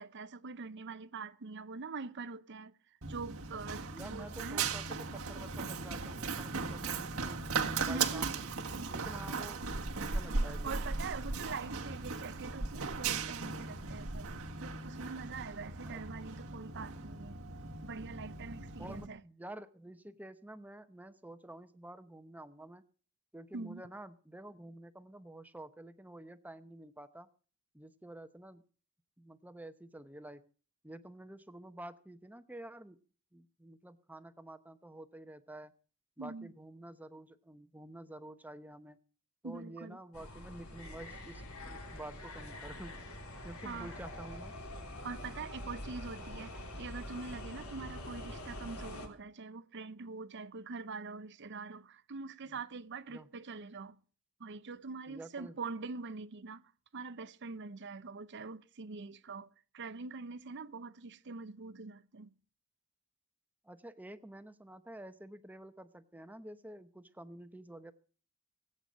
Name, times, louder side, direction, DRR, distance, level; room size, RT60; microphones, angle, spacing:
voice 1, 0.0-2.7 3.1-4.7 7.9-8.4 8.8-8.9 10.5-14.3 14.6-17.4 17.8-19.2 23.5-23.8 36.2-36.5 39.4-40.0 43.6-43.9 45.0-54.0 54.4-56.6 56.9-59.5 59.7-62.3, right 4 dB, 55° right, 0.7 m, -44 dB
Run, 3.0-19.1, right 4 dB, 80° right, 1.6 m, -37 dB
voice 2, 3.9-7.4 7.8-8.3 8.6-9.7 10.0-10.8 15.9-16.0 18.8-22.8 23.3-27.3 27.7-28.6 29.2-30.4 30.8-33.0 33.3-35.7 36.2-39.0 39.4-42.9 43.4-44.5 52.4-52.6 53.1-53.3 55.1-55.6 63.6-67.9, right 1 dB, 10° right, 0.9 m, -49 dB
sound 1, 40.1-49.1, left 1 dB, 85° left, 3.4 m, -45 dB
18.5 x 8.9 x 6.3 m
head